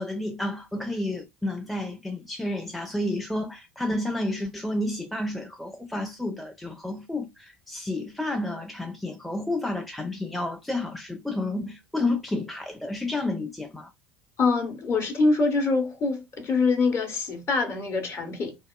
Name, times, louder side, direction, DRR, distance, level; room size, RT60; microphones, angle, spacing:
voice 1, 0.0-13.9, left 2 dB, ahead, 0.5 m, -30 dB
voice 2, 14.4-18.6, left 3 dB, 40° left, 0.8 m, -24 dB
2.7 x 2.3 x 2.2 m
figure-of-eight pair, 70°, 6 cm